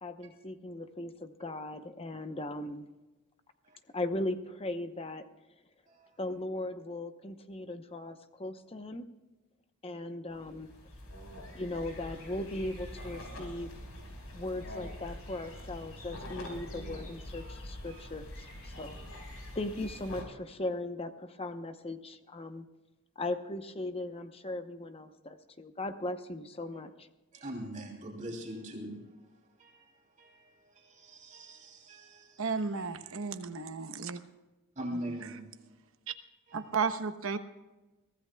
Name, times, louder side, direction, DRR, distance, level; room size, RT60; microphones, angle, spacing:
voice 1, 0.0-2.8 3.9-5.3 6.2-9.1 9.8-10.7 11.5-13.7 14.3-19.0 19.5-22.7 23.2-27.1, left 2 dB, 25° left, 9 dB, 0.8 m, -38 dB
voice 2, 5.9-6.2 11.5-11.6 17.9-18.1 26.7-26.8 27.3-29.2 29.6-29.9 30.2-32.4 32.8-33.4 34.8-35.5 36.5-36.7, right 1 dB, 35° right, 0 dB, 2.9 m, -43 dB
sound 1, 10.3-20.2, left 1 dB, 70° left, 5.0 m, -45 dB
voice 3, 32.4-34.2 35.1-35.2 36.1-36.2 36.5-37.4, right 5 dB, 65° right, 8 dB, 1.0 m, -33 dB
23.0 x 16.0 x 2.3 m, 1.1 s
head